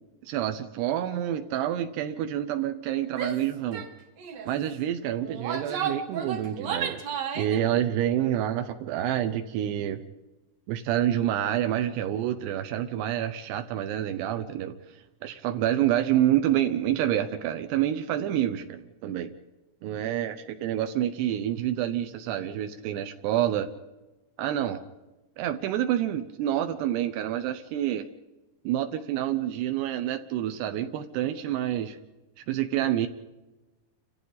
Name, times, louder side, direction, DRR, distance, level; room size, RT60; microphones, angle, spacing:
voice 1, 0.2-3.9 4.5-7.0 7.4-10.0 10.7-14.8 15.2-19.3 19.8-23.7 24.4-24.8 25.4-28.1 28.6-32.0 32.5-33.1, right 11 dB, 85° right, 7 dB, 2.9 m, -28 dB
Female speech woman speaking / Yell, 3.1-3.4 3.7-3.9 4.2-4.5 5.2-7.6, right 7 dB, 55° right, 1.9 m, -33 dB
29.5 x 26.5 x 4.0 m, 1.1 s
omnidirectional pair, 4.7 m